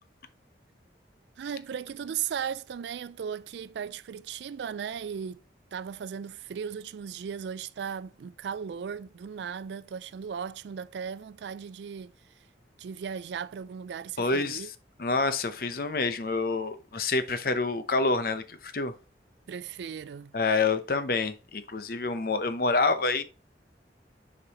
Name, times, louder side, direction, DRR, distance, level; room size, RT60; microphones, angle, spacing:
voice 1, 1.4-5.4 5.7-12.1 12.8-14.7 19.5-20.3, right 7 dB, 75° right, 0.3 m, -36 dB
voice 2, 14.2-14.7 15.0-18.9 20.3-23.2, left 3 dB, 55° left, 0.7 m, -27 dB
6.8 x 5.2 x 2.9 m
head